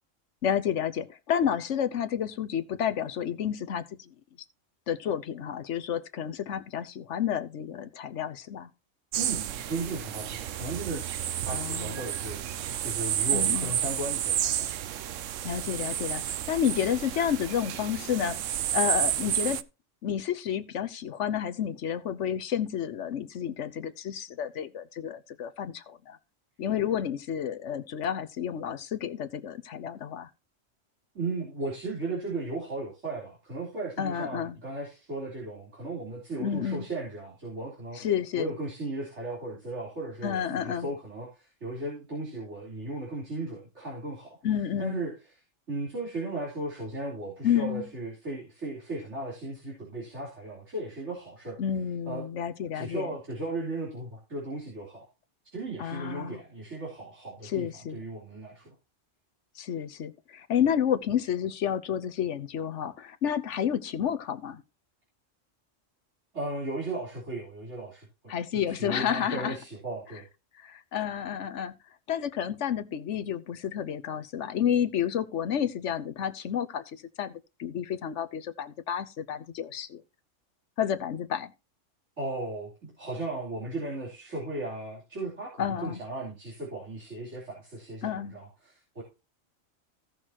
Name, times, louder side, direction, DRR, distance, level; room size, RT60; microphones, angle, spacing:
voice 1, 0.4-4.1 4.9-8.7 11.5-12.0 13.3-13.7 15.4-18.4 18.7-19.6 20.0-26.2 26.6-30.3 34.0-34.6 36.4-36.9 37.9-38.5 40.2-40.9 44.4-45.0 47.4-47.9 51.6-53.1 55.8-56.4 57.4-58.0 59.6-64.6 68.3-69.6 70.6-71.7 72.1-80.0 80.8-81.5 85.6-86.0 88.0-88.4, left 9 dB, 70° left, 1.1 m, -30 dB
sound 1, 9.1-19.6, right 11 dB, 85° right, 1.0 m, -31 dB
voice 2, 9.2-11.0 11.4-12.4 12.8-14.7 31.1-38.0 38.3-44.4 44.8-45.1 45.7-51.6 52.1-52.2 52.7-55.1 55.5-58.7 66.3-70.2 82.2-89.0, right 2 dB, 65° right, 3.9 m, -36 dB
16.5 x 6.3 x 2.9 m
omnidirectional pair, 1.3 m